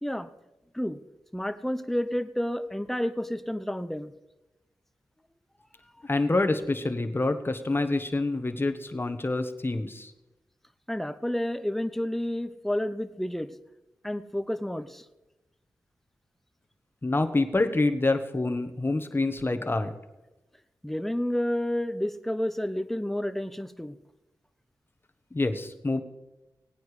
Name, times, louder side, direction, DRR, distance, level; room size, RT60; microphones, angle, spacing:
voice 1, 1.3-4.1 10.9-13.5 14.0-15.1 20.8-24.0, left 1 dB, 5° left, 10 dB, 0.8 m, -30 dB
voice 2, 6.0-10.1 17.0-19.9 25.3-26.0, left 2 dB, 30° left, 8 dB, 1.1 m, -27 dB
17.5 x 9.3 x 3.3 m, 1.0 s
cardioid pair, 50°, 8 cm